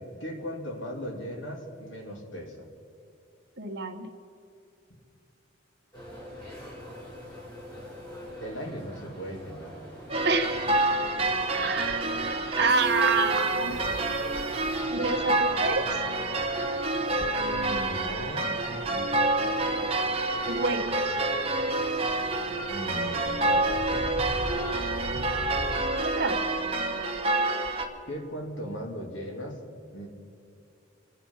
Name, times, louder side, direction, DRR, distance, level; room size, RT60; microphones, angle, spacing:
voice 1, 0.0-2.7 8.4-9.7 17.4-19.1 22.7-24.1 28.1-29.6 29.9-30.1, equal, 80° left, 1 dB, 3.1 m, -38 dB
voice 2, 3.6-4.1 10.2-10.7 11.5-13.8 14.9-15.8 20.5-21.2 26.0-26.4, right 4 dB, 55° right, 5 dB, 1.4 m, -28 dB
sound 1, 5.9-25.8, equal, 20° left, 4.7 m, -43 dB
sound 2, 10.1-27.8, right 2 dB, 30° right, 1.4 m, -28 dB
26.5 x 9.2 x 5.7 m, 2.5 s
head